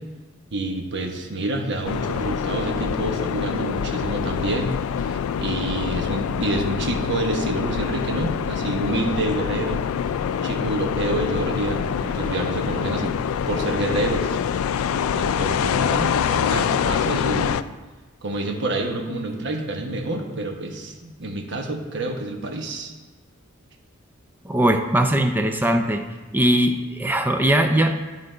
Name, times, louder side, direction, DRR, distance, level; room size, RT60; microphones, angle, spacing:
voice 1, 0.5-9.8 10.4-13.2 13.5-14.4 15.1-17.5 18.2-22.9, right 2 dB, 60° right, 3 dB, 1.1 m, -28 dB
sound 1, 1.9-17.6, left 7 dB, 90° left, 0.3 m, -25 dB
voice 2, 24.4-26.0 26.3-28.1, right 1 dB, 10° right, 5 dB, 0.4 m, -20 dB
9.8 x 3.9 x 5.0 m, 1.3 s
head